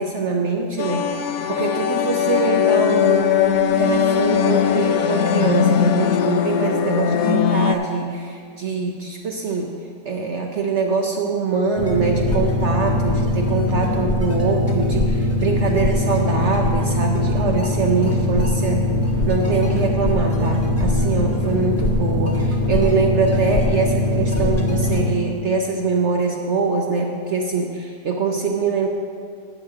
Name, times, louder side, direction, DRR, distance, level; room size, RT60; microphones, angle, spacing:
voice 1, 0.0-9.7 10.1-18.8 19.3-28.9, right 4 dB, 60° right, 2 dB, 0.8 m, -23 dB
sound 1, 0.8-7.7, left 8 dB, 70° left, 0.9 m, -19 dB
sound 2, 11.8-25.0, left 1 dB, 10° left, 0.8 m, -21 dB
10.5 x 7.2 x 4.8 m, 2.2 s
omnidirectional pair, 1.8 m